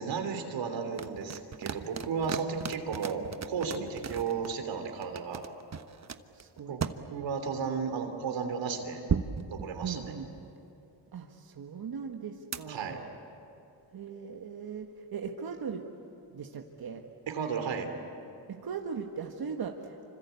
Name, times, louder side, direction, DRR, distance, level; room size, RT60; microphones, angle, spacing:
voice 1, 0.0-5.4 6.7-6.8 7.1-9.0 9.5-10.1 12.7-13.0 17.3-17.9, right 5 dB, 85° right, 6 dB, 3.2 m, -34 dB
sound 1, 0.9-4.5 5.0-7.0 9.1-10.5 12.5-12.6, right 6 dB, 40° right, 1.1 m, -35 dB
voice 2, 6.3-6.8 9.8-10.3 11.1-13.0 13.9-15.9 16.3-17.1 18.5-20.1, right 6 dB, 55° right, 3 dB, 1.6 m, -39 dB
26.0 x 26.0 x 8.4 m, 2.7 s
cardioid pair, 75°, 43 cm